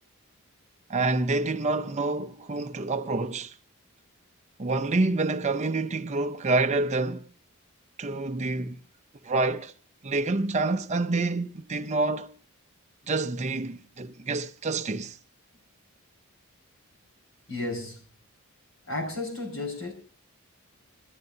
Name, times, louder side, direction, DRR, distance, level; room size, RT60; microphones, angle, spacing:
voice 1, 0.9-3.5 4.6-7.3 8.0-8.8 9.3-9.7 10.0-12.3 13.1-15.2, right 3 dB, 30° right, 0.6 m, -27 dB
voice 2, 17.5-18.1 18.9-19.9, left 2 dB, 65° left, 5.4 m, -33 dB
21.5 x 13.0 x 2.8 m
head